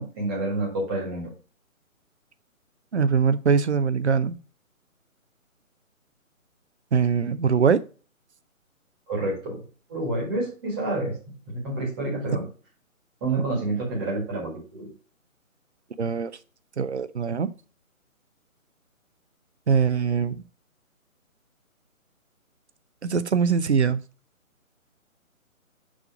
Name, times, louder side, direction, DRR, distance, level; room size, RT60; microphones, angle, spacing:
voice 1, 0.0-1.3 9.1-9.6 9.9-11.2 11.5-12.4 13.2-14.9, right 2 dB, 15° right, -2 dB, 1.5 m, -28 dB
voice 2, 2.9-4.4 6.9-7.8 16.0-16.3 16.8-17.5 19.7-20.4 23.0-24.0, right 6 dB, 50° right, 13 dB, 0.6 m, -22 dB
6.2 x 3.7 x 4.5 m, 0.35 s
figure-of-eight pair, 145°, 42 cm